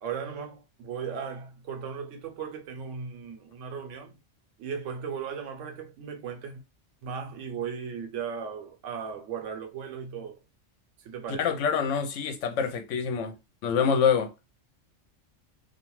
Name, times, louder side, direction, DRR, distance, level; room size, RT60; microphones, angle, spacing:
voice 1, 0.0-4.2 4.6-6.6 7.0-10.4 11.0-11.5, right 6 dB, 85° right, 1.0 m, -37 dB
voice 2, 11.4-13.3 13.6-14.3, left 7 dB, 80° left, 0.9 m, -26 dB
2.4 x 2.2 x 3.0 m
omnidirectional pair, 1.2 m